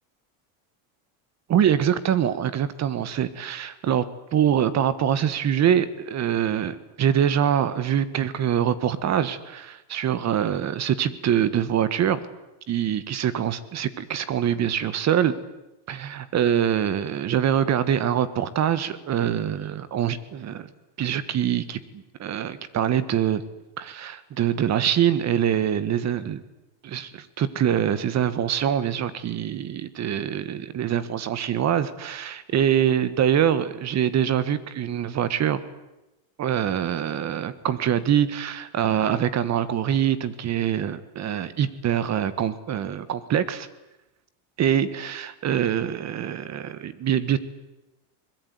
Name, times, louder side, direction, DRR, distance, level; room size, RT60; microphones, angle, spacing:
voice 1, 1.5-4.1 4.3-12.2 12.7-15.4 15.9-20.7 21.0-23.4 23.8-26.4 26.8-35.6 36.4-43.7 44.6-47.4, right 9 dB, 35° right, 15 dB, 1.6 m, -24 dB
23.0 x 21.5 x 9.5 m, 0.96 s
cardioid pair, 155°, 49 cm